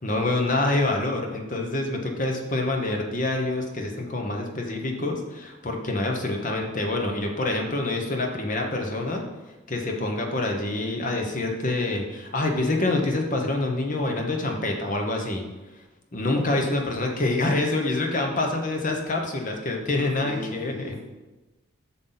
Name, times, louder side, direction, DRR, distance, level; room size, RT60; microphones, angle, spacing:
voice 1, 0.0-9.2 9.7-15.4 16.1-21.0, left 2 dB, 40° left, 2 dB, 1.1 m, -26 dB
voice 2, 20.2-21.0, left 1 dB, 15° left, -2 dB, 0.7 m, -36 dB
7.9 x 6.0 x 4.0 m, 1.1 s
head